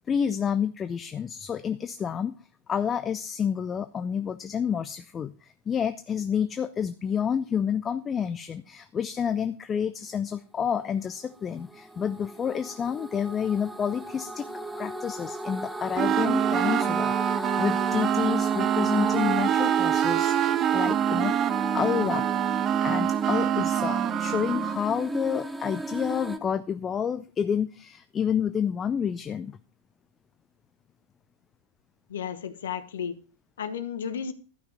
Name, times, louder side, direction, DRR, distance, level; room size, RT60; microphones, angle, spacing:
voice 1, 0.1-2.4 2.7-14.5 14.8-21.4 21.7-22.3 22.8-29.6, left 8 dB, 20° left, 12 dB, 0.5 m, -29 dB
sound 1, 11.2-26.4, right 1 dB, 5° right, 1.0 m, -35 dB
sound 2, 16.0-24.8, right 10 dB, 30° right, 0.5 m, -25 dB
voice 2, 32.1-33.2 33.6-34.3, left 7 dB, 65° left, 12 dB, 1.1 m, -33 dB
12.5 x 5.9 x 6.1 m, 0.37 s
figure-of-eight pair, 90°, 0 cm